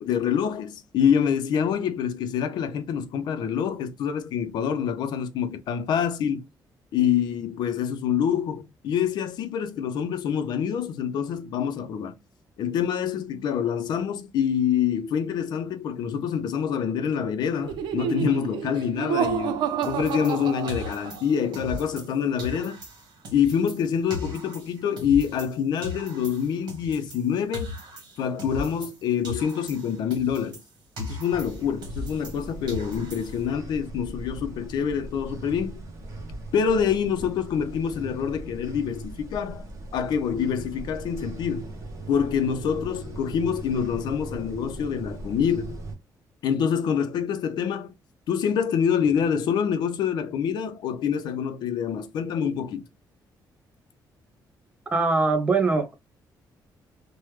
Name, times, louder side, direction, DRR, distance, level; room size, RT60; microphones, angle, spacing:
voice 1, 0.0-6.4 6.9-12.1 12.6-22.8 23.3-27.7 28.2-30.6 31.0-35.8 36.5-41.8 42.1-45.8 46.4-47.9 48.3-52.9, left 8 dB, 65° left, 0.5 m, -26 dB
Laughter, 17.6-21.4, right 8 dB, 85° right, 0.5 m, -29 dB
sound 1, 19.8-22.1 22.4-25.6 25.8-29.0 29.2-32.4 32.7-33.5, left 1 dB, 65° right, 1.3 m, -38 dB
sound 2, 31.3-45.9, right 2 dB, 40° right, 1.0 m, -39 dB
voice 2, 54.9-55.9, right 3 dB, 15° right, 0.5 m, -22 dB
3.1 x 2.2 x 3.1 m
cardioid pair, 180°, 8 cm